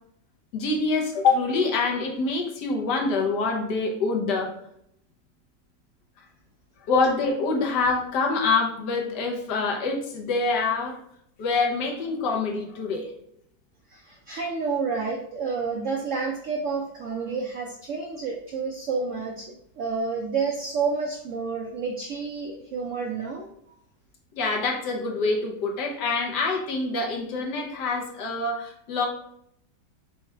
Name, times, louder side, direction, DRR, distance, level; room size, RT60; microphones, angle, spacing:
voice 1, 0.5-4.5 6.9-11.0 11.4-13.1 24.3-29.1, left 3 dB, 70° left, 1 dB, 1.4 m, -25 dB
voice 2, 13.9-23.5, right 4 dB, 85° right, 2 dB, 0.6 m, -29 dB
4.4 x 2.4 x 4.3 m, 0.72 s
omnidirectional pair, 1.9 m